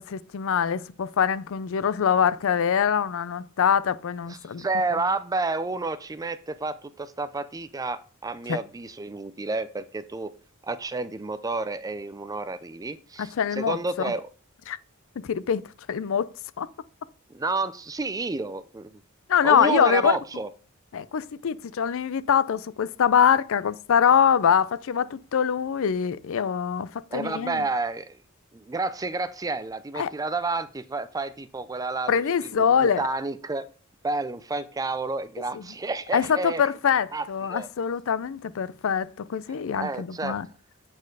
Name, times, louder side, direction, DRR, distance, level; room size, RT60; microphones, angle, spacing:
voice 1, 0.0-4.6 8.5-8.6 13.2-14.1 14.7-14.8 15.2-15.6 15.9-16.3 16.6-16.7 19.3-20.2 20.9-27.6 30.0-30.1 32.1-33.0 35.5-35.6 36.1-40.5, left 7 dB, 65° left, 0.4 m, -24 dB
voice 2, 4.3-10.3 10.6-14.3 17.3-19.0 19.4-20.5 27.1-28.2 28.5-33.7 34.0-36.6 37.1-37.7 39.5-40.4, right 3 dB, 15° right, 0.4 m, -30 dB
8.4 x 4.5 x 4.7 m
head